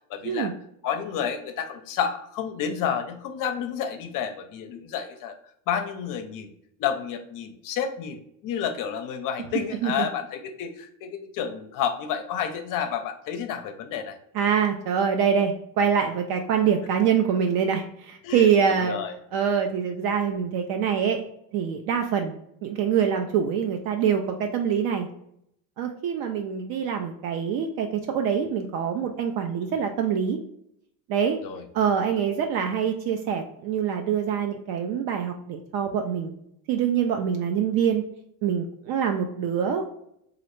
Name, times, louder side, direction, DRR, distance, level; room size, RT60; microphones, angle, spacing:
voice 1, 0.1-0.5 0.8-5.4 5.7-6.5 6.8-14.2 18.2-19.1 31.4-31.7 32.0-32.2, left 8 dB, 50° left, 7 dB, 0.5 m, -30 dB
voice 2, 14.3-19.0 19.3-21.2 21.5-25.1 25.8-30.4 31.1-31.4 31.7-36.3 36.7-38.0 38.4-39.9, right 7 dB, 60° right, 4 dB, 0.5 m, -25 dB
3.0 x 2.5 x 3.0 m, 0.73 s
supercardioid pair, 100°, 42 cm